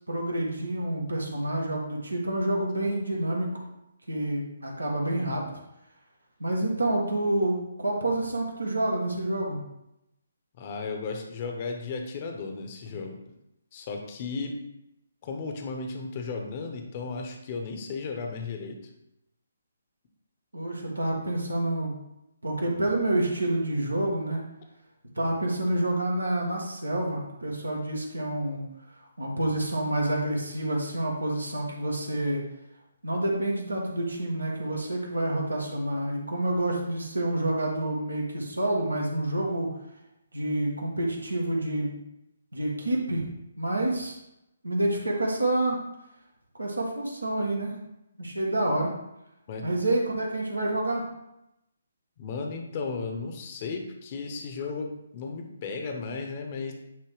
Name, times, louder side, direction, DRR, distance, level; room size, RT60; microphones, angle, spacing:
voice 1, 0.1-3.6 4.1-5.4 6.4-9.6 20.5-21.9 22.4-24.4 25.1-28.6 29.2-32.4 33.0-39.7 40.3-42.0 42.5-43.2 43.6-44.1 44.6-45.8 46.6-47.8 48.2-48.9 49.6-51.0, right 1 dB, 85° right, -1 dB, 1.6 m, -28 dB
voice 2, 10.6-13.2 13.7-14.6 15.2-18.9 49.5-49.7 52.2-56.7, left 4 dB, 35° left, 3 dB, 1.0 m, -35 dB
9.2 x 3.2 x 4.9 m, 0.87 s
figure-of-eight pair, 140°, 0 cm